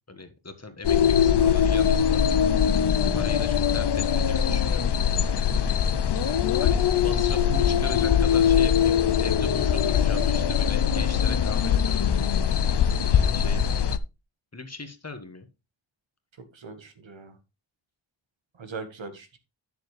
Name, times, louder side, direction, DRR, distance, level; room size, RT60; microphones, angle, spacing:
voice 1, 0.1-2.4 3.1-4.9 6.6-12.7 13.1-13.8 14.5-15.5, left 3 dB, 35° left, 7 dB, 1.5 m, -39 dB
sound 1, 0.8-14.0, left 8 dB, 60° left, 0.6 m, -22 dB
voice 2, 5.5-5.8 12.9-13.3 16.5-17.4 18.6-19.4, right 4 dB, 70° right, 8 dB, 1.5 m, -41 dB
10.0 x 7.2 x 3.2 m, 0.26 s
wide cardioid pair, 90°, 47 cm